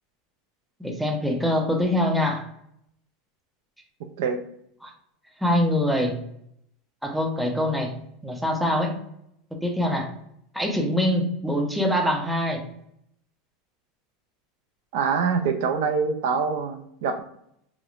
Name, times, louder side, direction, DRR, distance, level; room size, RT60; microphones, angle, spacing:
voice 1, 0.8-2.5 4.8-4.9 5.4-6.2 7.0-7.9 8.2-8.9 9.5-10.1 10.5-12.6, left 1 dB, ahead, 1 dB, 0.4 m, -24 dB
voice 2, 14.9-17.2, right 5 dB, 70° right, 6 dB, 0.3 m, -25 dB
2.9 x 2.0 x 2.4 m, 0.73 s
supercardioid pair, 155°, 0 cm